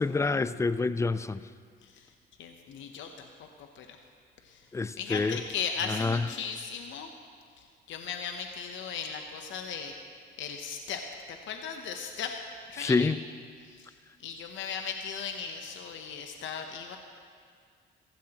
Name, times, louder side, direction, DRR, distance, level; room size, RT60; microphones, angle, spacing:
voice 1, 0.0-1.4 4.7-5.4 5.9-6.3 12.8-13.2, left 4 dB, 15° left, 14 dB, 0.4 m, -27 dB
voice 2, 2.4-4.0 4.4-4.7 5.0-7.1 7.6-10.0 10.4-12.4 12.7-13.2 13.6-13.9 14.2-17.0, left 6 dB, 75° left, 4 dB, 0.8 m, -37 dB
15.5 x 14.5 x 2.9 m, 2.1 s
cardioid pair, 90°, 20 cm